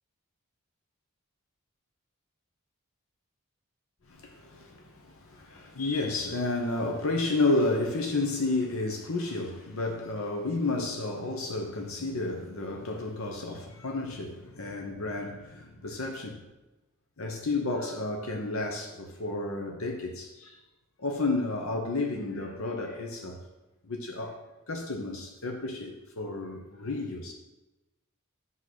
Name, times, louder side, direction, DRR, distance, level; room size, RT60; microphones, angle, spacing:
voice 1, 4.1-16.4 17.2-20.6 21.0-23.4 23.9-24.4 24.7-27.3, left 2 dB, 70° left, 2 dB, 0.9 m, -31 dB
8.4 x 3.7 x 6.3 m, 1.0 s
head